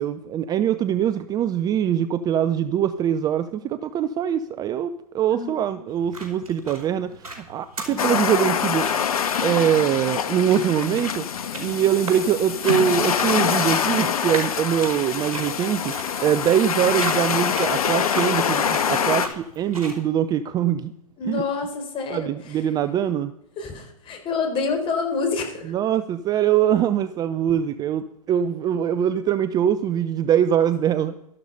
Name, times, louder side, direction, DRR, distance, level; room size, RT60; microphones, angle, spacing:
voice 1, 0.0-8.9 9.4-11.3 11.6-15.9 16.2-20.9 21.2-21.4 22.1-23.3 25.7-31.2, right 9 dB, 20° right, 14 dB, 0.5 m, -23 dB
voice 2, 5.3-5.8 7.9-8.3 21.2-22.6 23.6-25.7, left 4 dB, 25° left, 5 dB, 4.2 m, -28 dB
sound 1, 5.9-20.0, right 2 dB, 70° right, 5.1 m, -39 dB
sound 2, 8.0-19.3, left 7 dB, 70° left, 1.4 m, -25 dB
13.5 x 12.0 x 5.5 m, 0.82 s
figure-of-eight pair, 110°, 19 cm